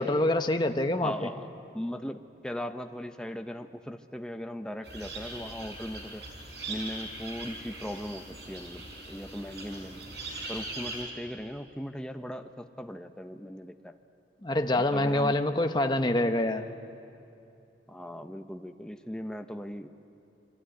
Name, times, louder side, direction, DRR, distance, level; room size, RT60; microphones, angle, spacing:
voice 1, 0.0-1.1 14.4-16.6, left 1 dB, 25° left, 6 dB, 1.0 m, -26 dB
voice 2, 1.0-6.3 6.7-10.0 10.5-14.0 14.9-15.6 17.9-19.9, equal, 5° left, 6 dB, 0.7 m, -39 dB
sound 1, 4.8-11.0, right 2 dB, 65° right, 5.6 m, -41 dB
27.5 x 23.5 x 9.1 m, 2.7 s
head